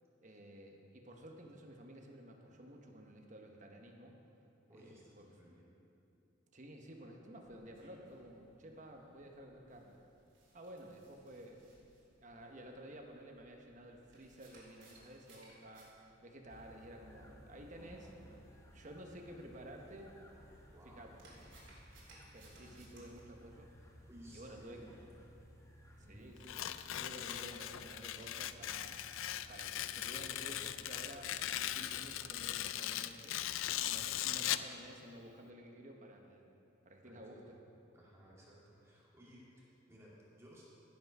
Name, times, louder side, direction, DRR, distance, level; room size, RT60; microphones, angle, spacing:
voice 1, 0.2-4.2 4.7-5.4 6.5-10.0 10.5-11.7 12.2-15.9 16.2-18.4 18.7-20.1 20.8-21.2 22.3-23.7 24.3-25.0 26.1-26.6 26.9-29.0 29.5-33.4 33.9-36.5 36.8-37.4, right 1 dB, 40° right, 2 dB, 1.0 m, -53 dB
voice 2, 4.7-5.7 20.7-21.3 24.1-25.0 26.0-26.3 33.9-34.2 37.0-37.5 37.9-40.6, equal, 15° right, -7 dB, 2.4 m, -59 dB
sound 1, 7.3-23.2, right 2 dB, 70° right, 2.8 m, -65 dB
sound 2, 16.5-32.7, equal, 15° left, 0.9 m, -59 dB
Tearing, 26.4-34.7, left 12 dB, 85° left, 0.4 m, -39 dB
15.5 x 5.8 x 5.4 m, 2.7 s
head